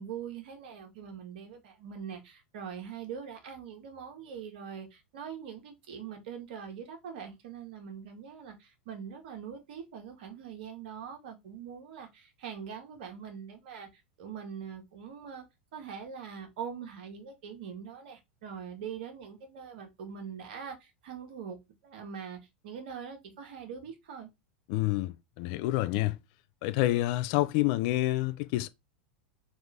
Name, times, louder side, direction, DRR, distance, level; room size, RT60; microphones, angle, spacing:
voice 1, 0.0-15.4 15.7-21.6 21.8-22.4 22.6-24.3, right 7 dB, 60° right, 1.1 m, -43 dB
voice 2, 24.7-26.2 26.6-28.7, left 16 dB, 50° left, 0.3 m, -28 dB
3.5 x 2.4 x 3.2 m
hypercardioid pair, 90°, 6 cm